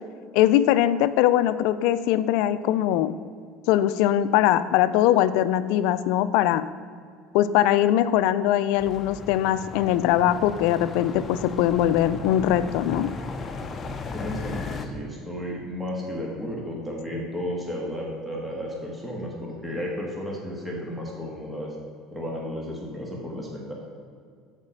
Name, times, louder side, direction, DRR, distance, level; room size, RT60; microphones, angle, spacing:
voice 1, 0.3-3.2 3.7-6.7 7.3-13.1, left 12 dB, 75° left, 14 dB, 0.4 m, -21 dB
sound 1, 8.8-14.9, left 3 dB, 30° left, 0.7 m, -36 dB
voice 2, 14.1-21.7 22.1-23.7, equal, 5° right, -3 dB, 1.6 m, -33 dB
7.3 x 4.9 x 6.5 m, 2.2 s
supercardioid pair, 110°, 0 cm